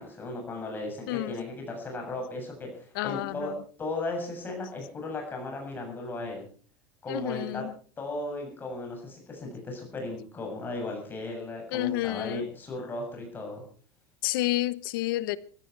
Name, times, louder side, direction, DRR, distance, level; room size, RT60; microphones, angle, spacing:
voice 1, 0.0-3.5 3.8-6.5 7.0-7.6 8.0-13.6, left 2 dB, 15° left, 7.4 m, -36 dB
voice 2, 1.1-1.4 2.9-3.5 7.1-7.7 11.7-12.5 14.2-15.4, left 16 dB, 75° left, 1.0 m, -30 dB
17.5 x 16.0 x 4.7 m
supercardioid pair, 160°, 12 cm